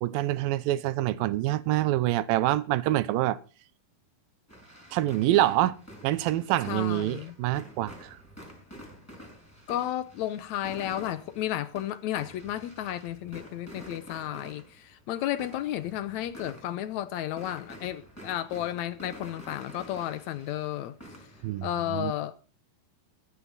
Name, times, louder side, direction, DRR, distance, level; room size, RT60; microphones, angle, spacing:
voice 1, 0.0-3.4 4.9-5.7 6.0-8.1 21.4-22.1, right 15 dB, 85° right, 2.5 m, -26 dB
sound 1, 4.5-21.9, equal, 5° left, 5.7 m, -49 dB
voice 2, 6.7-7.3 9.7-20.9 21.6-22.3, left 12 dB, 75° left, 1.8 m, -33 dB
15.5 x 13.0 x 4.1 m
omnidirectional pair, 4.0 m